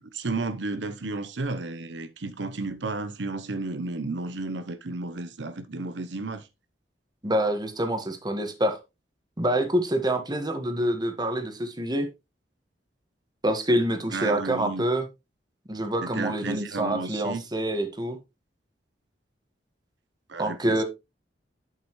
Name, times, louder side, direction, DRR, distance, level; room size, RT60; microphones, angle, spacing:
voice 1, 0.0-6.5 14.1-14.9 16.0-17.4 20.3-20.8, right 3 dB, 85° right, 0.8 m, -33 dB
voice 2, 7.2-8.8 9.4-12.1 13.4-15.1 15.7-18.2 20.4-20.8, right 1 dB, 25° right, 1.5 m, -26 dB
8.1 x 7.7 x 3.1 m
head